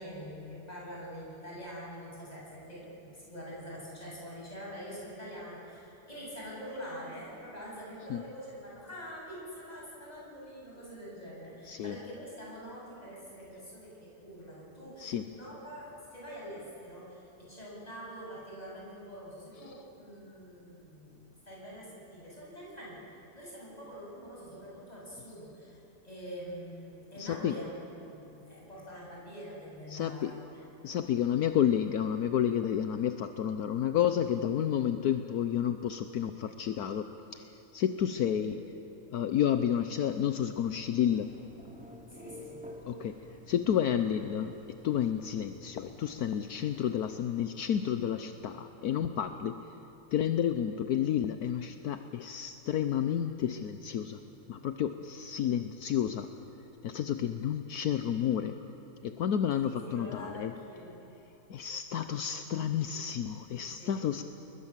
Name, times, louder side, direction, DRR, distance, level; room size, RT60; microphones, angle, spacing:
voice 1, 0.0-23.0 23.3-25.8 26.0-27.7 28.0-30.6 42.1-42.7 59.6-61.2 63.8-63.9, equal, 25° left, -5 dB, 8.1 m, -45 dB
voice 2, 27.2-27.6 29.9-30.4 30.8-38.6 39.1-41.3 42.9-44.6 44.8-49.6 50.1-54.2 54.5-56.3 56.8-58.6 59.0-60.5 61.5-64.2, left 9 dB, 70° left, 9 dB, 1.3 m, -30 dB
Telephone, 41.0-47.2, left 1 dB, 5° right, 2.5 m, -51 dB
29.5 x 21.5 x 7.5 m, 3.0 s
omnidirectional pair, 1.7 m